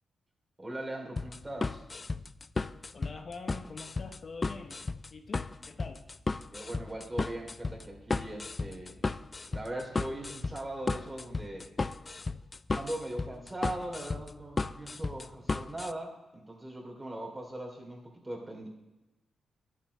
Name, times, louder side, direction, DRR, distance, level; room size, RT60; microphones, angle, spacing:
voice 1, 0.6-1.8 6.5-9.0 9.5-11.7 12.7-18.7, right 1 dB, 20° right, -1 dB, 3.2 m, -40 dB
sound 1, 1.2-15.9, left 3 dB, 30° left, 0.3 m, -34 dB
voice 2, 2.9-4.8 5.1-6.1, left 4 dB, 45° left, 6 dB, 0.8 m, -45 dB
12.0 x 7.5 x 4.1 m, 1.0 s
cardioid pair, 90°, 0 cm